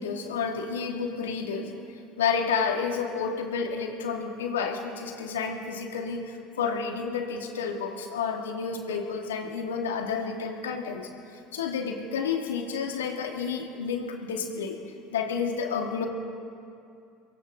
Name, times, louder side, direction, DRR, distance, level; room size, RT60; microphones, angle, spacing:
voice 1, 0.0-6.2 6.6-14.8 15.1-16.1, left 6 dB, 85° left, 2 dB, 2.5 m, -30 dB
29.5 x 23.0 x 4.0 m, 2.4 s
hypercardioid pair, 70°, 0 cm